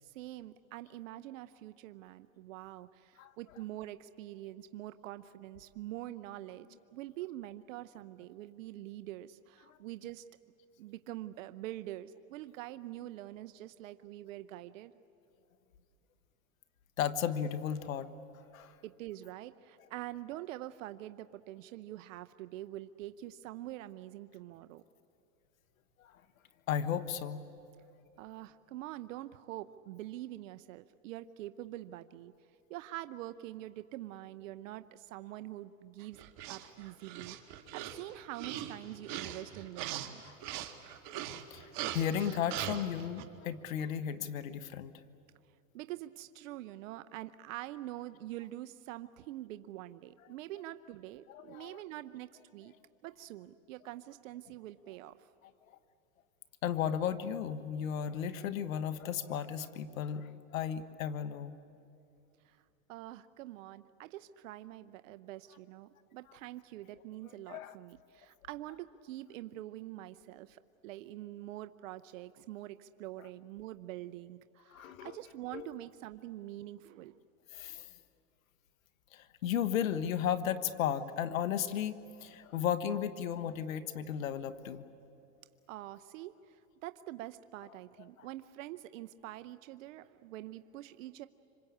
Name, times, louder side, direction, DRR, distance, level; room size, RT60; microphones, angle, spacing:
voice 1, 0.0-10.2 10.8-14.9 18.8-24.8 28.2-32.3 32.7-36.2 36.5-37.4 37.7-40.2 45.7-52.7 53.0-55.2 62.4-62.6 62.9-77.2 85.7-91.3, right 15 dB, 70° right, 12 dB, 0.8 m, -45 dB
voice 2, 17.0-18.1 18.5-18.7 26.7-27.4 40.2-40.4 41.5-44.9 51.3-51.8 56.6-61.5 67.5-67.7 74.7-75.2 75.5-75.7 77.5-77.9 79.1-84.8, left 9 dB, 85° left, 12 dB, 1.4 m, -34 dB
sound 1, 36.0-43.2, right 11 dB, 50° right, 2.0 m, -41 dB
26.5 x 26.0 x 8.6 m, 2.6 s
supercardioid pair, 120°, 40 cm